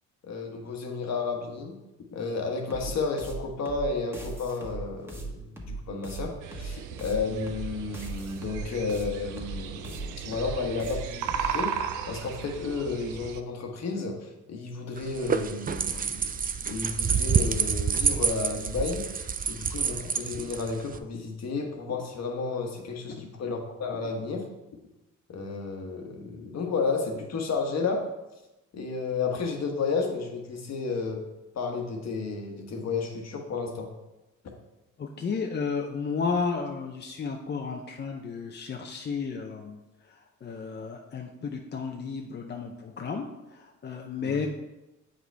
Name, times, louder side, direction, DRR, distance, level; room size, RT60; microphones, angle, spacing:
voice 1, 0.3-1.8 2.1-16.3 16.6-19.0 19.5-24.4 25.3-28.0 28.7-31.2 31.5-33.9 44.2-44.4, left 4 dB, 60° left, 2 dB, 1.3 m, -32 dB
sound 1, 2.7-11.5, right 3 dB, 10° right, 1.3 m, -38 dB
sound 2, 6.4-13.4, right 8 dB, 90° right, 0.5 m, -36 dB
sound 3, 15.0-21.0, right 6 dB, 30° right, 0.4 m, -28 dB
voice 2, 35.0-39.8 40.1-44.5, left 5 dB, 35° left, 2 dB, 0.6 m, -33 dB
7.9 x 5.1 x 3.4 m, 1.0 s
cardioid pair, 90°, 30 cm